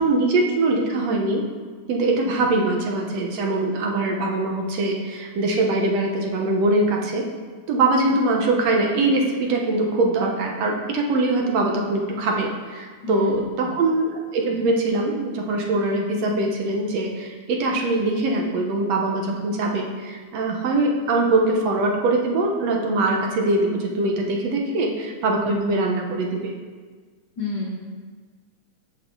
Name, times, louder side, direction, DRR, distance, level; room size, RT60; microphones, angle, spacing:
voice 1, 0.0-1.4 1.9-7.2 7.7-26.5, right 2 dB, 65° right, 0 dB, 2.2 m, -22 dB
voice 2, 13.0-13.4 13.6-13.7 27.4-27.8, left 3 dB, 45° left, -4 dB, 1.6 m, -29 dB
17.0 x 5.7 x 3.9 m, 1.5 s
omnidirectional pair, 3.4 m